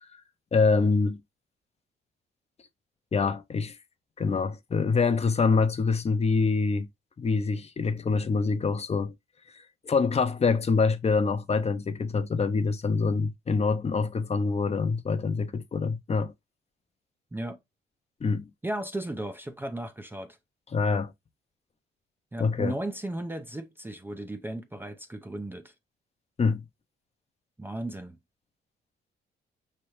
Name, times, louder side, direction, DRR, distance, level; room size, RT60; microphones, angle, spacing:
voice 1, 0.5-1.2 3.1-3.8 4.2-6.9 7.2-9.1 9.8-16.3 18.2-18.5 20.7-21.1 22.4-22.7 26.4-26.6, left 4 dB, 30° left, 0.6 m, -25 dB
voice 2, 18.6-20.4 22.3-25.7 27.6-28.2, right 1 dB, 10° right, 0.5 m, -35 dB
5.1 x 3.3 x 3.0 m
cardioid pair, 90°, 20 cm